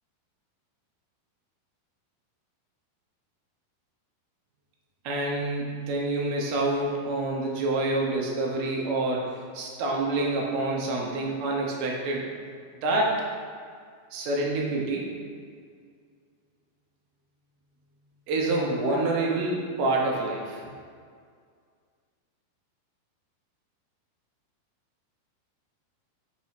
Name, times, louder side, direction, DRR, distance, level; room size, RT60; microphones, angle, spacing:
voice 1, 5.0-12.3 12.8-13.2 14.1-15.1 18.3-20.6, right 2 dB, 80° right, -2 dB, 2.8 m, -27 dB
7.4 x 6.1 x 4.3 m, 2.1 s
omnidirectional pair, 4.6 m